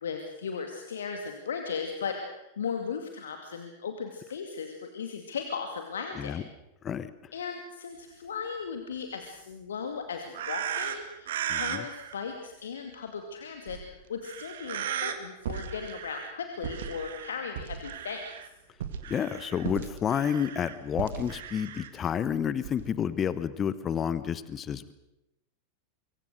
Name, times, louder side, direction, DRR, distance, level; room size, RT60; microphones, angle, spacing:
voice 1, 0.0-6.4 7.3-18.2, left 6 dB, 65° left, 5 dB, 2.4 m, -37 dB
voice 2, 6.8-7.3 11.5-11.9 19.1-24.9, left 8 dB, 25° left, 15 dB, 1.1 m, -30 dB
sound 1, 10.3-12.1 13.7-13.8 14.2-15.1 15.4-16.3 16.6-18.5 18.8-21.9 22.6-22.9, right 9 dB, 60° right, 2.1 m, -36 dB
25.0 x 23.5 x 6.6 m, 0.90 s
figure-of-eight pair, 90°, 0 cm